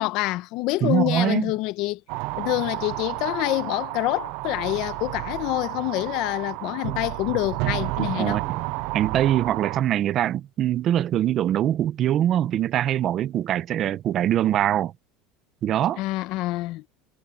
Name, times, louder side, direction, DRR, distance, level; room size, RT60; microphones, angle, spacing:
voice 1, 0.0-2.0 2.4-8.4 16.0-16.8, left 19 dB, 55° left, 0.9 m, -26 dB
voice 2, 0.8-1.5 8.0-8.6 8.9-14.9 15.6-16.0, right 11 dB, 40° right, 0.9 m, -23 dB
sound 1, 2.1-9.8, right 23 dB, 65° right, 0.5 m, -31 dB
supercardioid pair, 140°, 0 cm